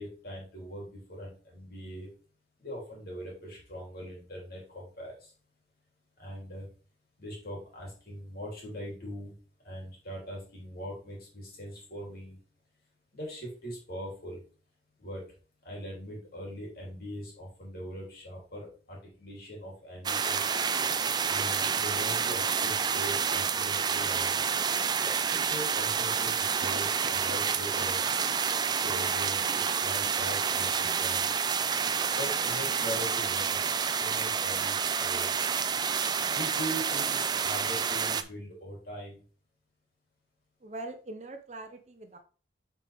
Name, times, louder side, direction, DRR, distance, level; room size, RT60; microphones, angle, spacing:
voice 1, 0.0-2.1 2.6-5.3 6.2-6.7 7.2-9.3 9.6-12.4 13.1-14.4 15.0-15.2 15.6-20.5 21.3-24.4 25.3-28.0 28.7-31.2 32.1-33.7 34.0-35.3 36.3-39.2, equal, 50° left, -2 dB, 3.1 m, -41 dB
sound 1, 20.0-38.2, right 6 dB, 20° right, 0.3 m, -29 dB
voice 2, 40.6-42.2, right 2 dB, 40° right, 6 dB, 0.7 m, -42 dB
7.6 x 4.6 x 3.5 m, 0.39 s
head